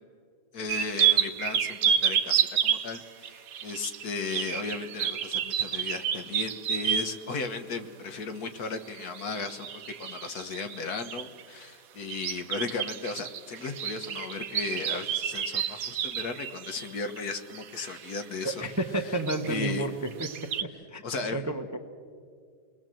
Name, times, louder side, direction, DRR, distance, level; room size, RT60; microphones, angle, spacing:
voice 1, 0.5-9.7 10.0-18.6 19.5-19.9 21.0-21.4, left 4 dB, 60° left, 7 dB, 1.7 m, -35 dB
sound 1, 0.7-7.2 8.9-11.4 12.1-18.2 18.6-18.8 19.1-19.5 20.1-20.6, right 8 dB, 60° right, 1.2 m, -30 dB
voice 2, 18.4-20.3 20.6-21.0 21.3-21.8, right 2 dB, 15° right, 7 dB, 0.7 m, -31 dB
28.5 x 21.0 x 7.7 m, 2.2 s
omnidirectional pair, 1.9 m